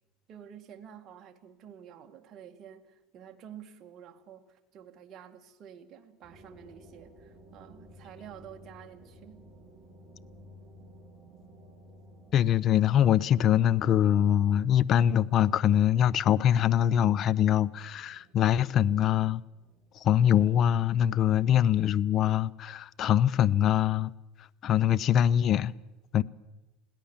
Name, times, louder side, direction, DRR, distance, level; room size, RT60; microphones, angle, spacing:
voice 1, 0.3-9.5, right 9 dB, 40° right, 2.0 m, -50 dB
sound 1, 6.2-22.5, right 1 dB, 10° right, 6.0 m, -55 dB
voice 2, 12.3-19.4 20.0-24.1 24.6-25.7 26.1-26.2, left 10 dB, 40° left, 0.6 m, -23 dB
21.5 x 17.0 x 7.2 m
supercardioid pair, 135°, 0 cm